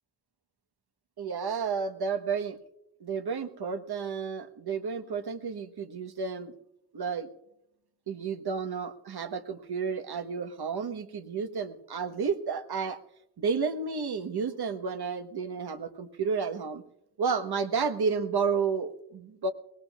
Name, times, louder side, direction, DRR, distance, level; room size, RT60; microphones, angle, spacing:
voice 1, 1.2-2.6 3.0-6.5 6.9-7.3 8.1-13.0 13.4-16.8 17.2-19.5, right 5 dB, 55° right, 9 dB, 1.3 m, -31 dB
21.5 x 19.0 x 2.4 m, 0.81 s
supercardioid pair, 45°, 46 cm